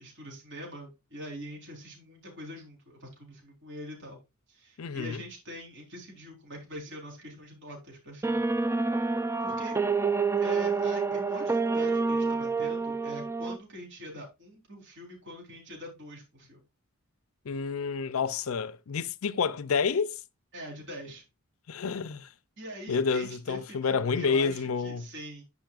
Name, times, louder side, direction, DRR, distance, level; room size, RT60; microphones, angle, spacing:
voice 1, 0.0-4.2 4.5-8.5 9.4-9.8 10.4-16.6 20.5-21.2 22.6-25.4, equal, 60° right, 4.2 m, -43 dB
voice 2, 4.8-5.2 17.5-20.2 21.7-22.3 22.9-25.1, left 5 dB, 75° left, 0.5 m, -29 dB
sound 1, 8.2-13.6, right 4 dB, 10° right, 0.4 m, -28 dB
10.5 x 5.5 x 2.5 m
head